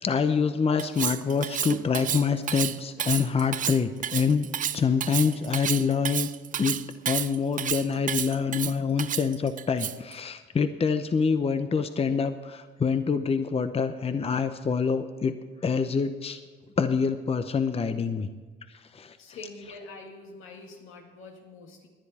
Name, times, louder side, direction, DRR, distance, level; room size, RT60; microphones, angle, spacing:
voice 1, 0.0-4.5 4.7-6.3 6.6-15.4 15.6-16.4 16.8-18.3 18.9-19.2, left 5 dB, 30° left, 10 dB, 0.7 m, -26 dB
Cutlery silverware, 0.8-10.1, right 9 dB, 40° right, 0.4 m, -30 dB
voice 2, 19.2-21.9, left 3 dB, 90° left, 2 dB, 2.1 m, -45 dB
19.0 x 10.0 x 4.3 m, 1.4 s
cardioid pair, 90°, 20 cm